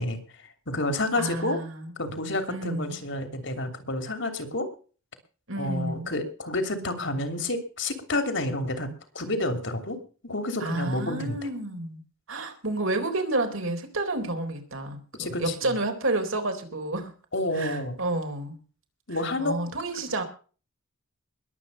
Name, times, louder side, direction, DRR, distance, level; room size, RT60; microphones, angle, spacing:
voice 1, 0.0-1.6 2.0-4.7 5.6-10.0 10.2-11.4 15.1-15.5 17.3-18.0 19.1-19.5, left 2 dB, 55° left, 8 dB, 2.9 m, -29 dB
voice 2, 1.2-1.9 2.5-3.0 5.5-6.1 10.6-12.0 12.3-17.1 17.5-18.6 19.4-20.2, right 2 dB, 65° right, 5 dB, 3.9 m, -30 dB
21.0 x 8.5 x 5.5 m, 0.39 s
head